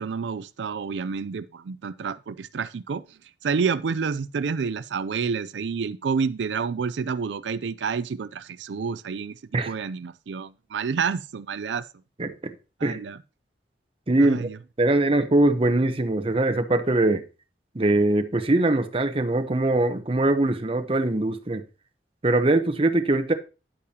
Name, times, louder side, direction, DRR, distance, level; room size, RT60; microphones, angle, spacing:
voice 1, 0.0-3.0 3.4-11.9 12.8-13.2 14.2-14.6, right 5 dB, 90° right, 0.4 m, -29 dB
voice 2, 12.2-12.5 12.8-13.0 14.1-14.5 14.8-17.2 17.7-21.6 22.2-23.3, right 2 dB, 30° right, 0.8 m, -22 dB
10.0 x 8.5 x 2.8 m
head